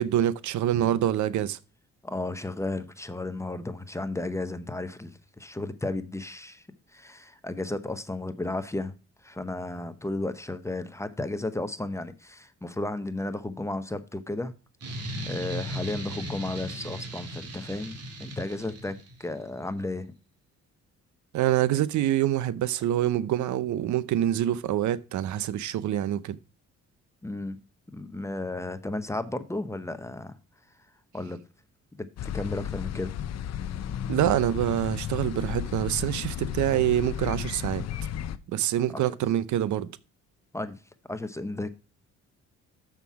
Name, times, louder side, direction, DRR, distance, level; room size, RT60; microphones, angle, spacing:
voice 1, 0.0-1.6 21.3-26.4 34.1-37.8 38.5-39.9, right 12 dB, 70° right, 0.6 m, -26 dB
voice 2, 2.0-6.6 6.9-9.0 9.2-14.5 14.9-20.1 27.2-27.6 27.9-30.4 31.1-31.4 31.9-33.1 38.9-39.0 40.5-40.8 41.1-41.7, left 2 dB, 10° left, 0.8 m, -33 dB
sound 1, 14.8-19.3, equal, 55° right, 2.1 m, -37 dB
sound 2, 32.2-38.4, left 10 dB, 60° left, 0.6 m, -33 dB
6.9 x 5.9 x 4.6 m
cardioid pair, 90°, 30 cm